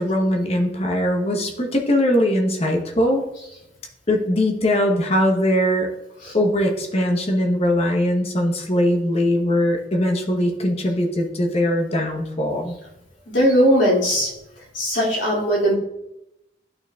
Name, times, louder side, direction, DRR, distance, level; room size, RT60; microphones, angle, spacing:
voice 1, 0.0-3.2 4.1-5.9 6.3-12.7, left 1 dB, 35° left, 2 dB, 1.0 m, -21 dB
voice 2, 13.3-14.3 14.7-15.7, equal, 80° left, -5 dB, 2.6 m, -19 dB
11.5 x 4.5 x 2.3 m, 0.87 s
head